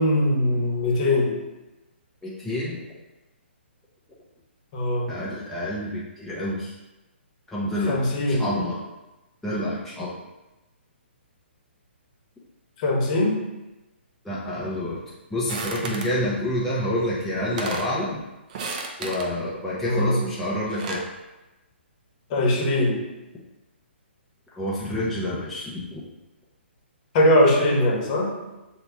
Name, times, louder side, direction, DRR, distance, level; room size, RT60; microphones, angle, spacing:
voice 1, 0.0-1.4 4.7-5.1 7.9-8.5 12.8-13.4 19.8-20.2 22.3-23.0 27.1-28.3, left 1 dB, 40° left, -2 dB, 1.2 m, -21 dB
voice 2, 2.2-2.8 5.1-6.8 7.5-8.8 9.4-10.1 14.2-15.0 15.3-18.2 19.0-21.0 24.5-26.0, left 1 dB, 5° left, -9 dB, 0.7 m, -28 dB
sound 1, 15.5-16.2 17.1-17.2 17.4-18.0 18.5-19.3 20.5-21.1, right 4 dB, 40° right, 0.6 m, -33 dB
7.7 x 2.9 x 2.3 m, 1.0 s
figure-of-eight pair, 135°, 6 cm